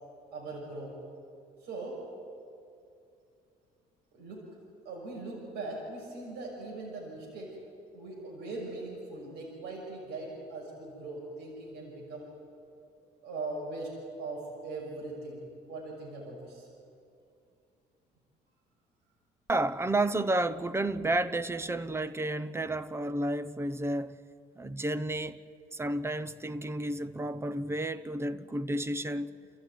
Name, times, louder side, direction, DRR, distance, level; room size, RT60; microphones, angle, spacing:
voice 1, 0.3-0.9 1.6-2.0 4.1-4.4 4.8-7.6 7.9-12.3 13.2-16.7, right 2 dB, 75° right, 6.1 m, -40 dB
voice 2, 19.5-24.2 24.6-25.4 25.7-29.4, right 1 dB, 15° right, 0.9 m, -31 dB
29.0 x 15.0 x 9.5 m
cardioid pair, 110°, 17 cm